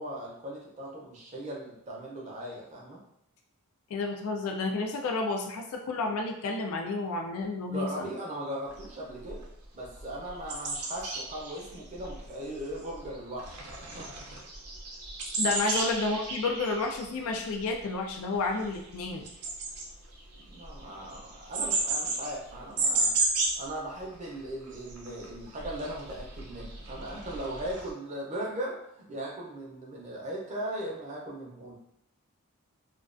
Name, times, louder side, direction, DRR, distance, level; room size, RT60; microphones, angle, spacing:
voice 1, 0.0-3.0 7.7-9.5 9.7-14.1 15.5-15.6 20.4-23.1 23.6-31.8, right 1 dB, 30° right, -3 dB, 0.5 m, -38 dB
voice 2, 3.9-8.1 15.4-19.3, left 3 dB, 70° left, 3 dB, 0.3 m, -31 dB
sound 1, 8.7-8.9 9.3-9.4 9.8-13.1 13.4-23.7 24.0-24.1 24.4-27.9, right 3 dB, 90° right, 0.5 m, -33 dB
2.3 x 2.2 x 2.5 m, 0.78 s
head